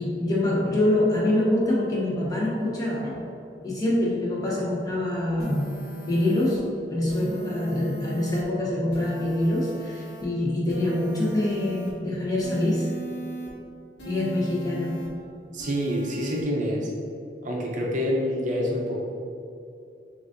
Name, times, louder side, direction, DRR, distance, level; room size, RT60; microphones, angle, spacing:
voice 1, 0.0-3.2 3.6-5.7 6.1-12.9 14.0-15.0, left 1 dB, 20° left, -6 dB, 1.0 m, -25 dB
sound 1, 5.4-6.6 7.1-8.4 8.9-10.2 10.7-11.9 12.4-13.5 14.0-15.1 15.6-16.4, right 2 dB, 65° left, 1.0 m, -39 dB
voice 2, 15.5-16.9 17.4-19.0, equal, 45° right, -2 dB, 0.6 m, -27 dB
7.1 x 2.5 x 2.6 m, 2.6 s
head